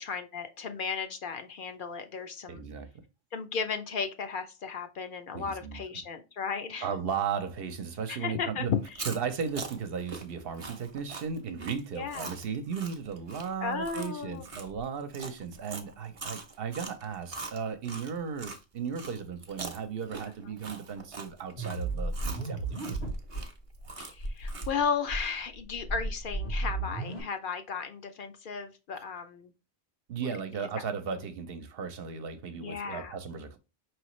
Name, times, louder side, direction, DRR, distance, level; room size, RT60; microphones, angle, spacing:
voice 1, 0.0-2.6 3.3-6.9 8.1-9.0 11.9-12.3 13.6-14.5 24.0-29.5 32.6-33.2, left 6 dB, 60° left, 0.7 m, -34 dB
voice 2, 2.5-2.9 5.3-5.8 6.8-8.7 9.1-23.0 30.1-33.6, right 6 dB, 70° right, 0.8 m, -36 dB
Chewing mastication, 8.8-18.6 18.9-24.9, right 4 dB, 40° right, 0.6 m, -43 dB
sound 1, 21.6-23.4 23.8-23.9 24.2-24.7 25.1-27.2, right 2 dB, 85° left, 1.5 m, -33 dB
4.9 x 3.1 x 3.0 m
omnidirectional pair, 1.1 m